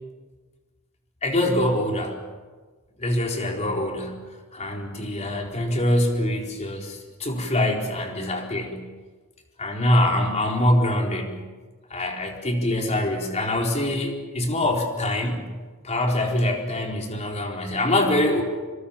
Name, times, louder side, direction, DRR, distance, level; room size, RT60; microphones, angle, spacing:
voice 1, 1.2-2.2 3.0-4.2 4.5-8.8 9.6-11.4 11.9-15.4 15.8-18.4, left 1 dB, 30° left, 1 dB, 4.3 m, -24 dB
26.5 x 25.0 x 7.2 m, 1.4 s
head